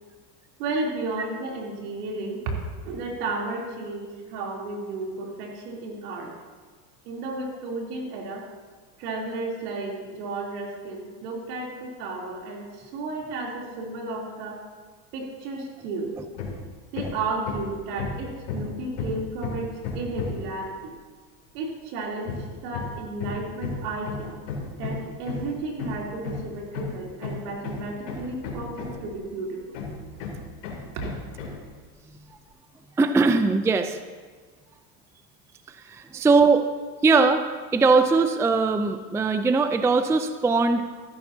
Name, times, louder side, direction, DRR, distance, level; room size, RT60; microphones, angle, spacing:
voice 1, 0.6-6.3 7.0-8.4 9.0-14.6 15.1-16.1 16.9-20.9 21.5-24.4 24.8-29.8, right 3 dB, 70° right, -1 dB, 3.4 m, -33 dB
Hammer, 16.4-16.7 16.9-20.5 22.3-29.2 29.7-31.7, left 4 dB, 75° left, 3.2 m, -34 dB
voice 2, 33.0-34.0 35.7-36.7 37.0-37.5 37.7-40.9, right 4 dB, 5° right, 9 dB, 0.4 m, -20 dB
15.5 x 13.5 x 2.8 m, 1.5 s
hypercardioid pair, 95°, 48 cm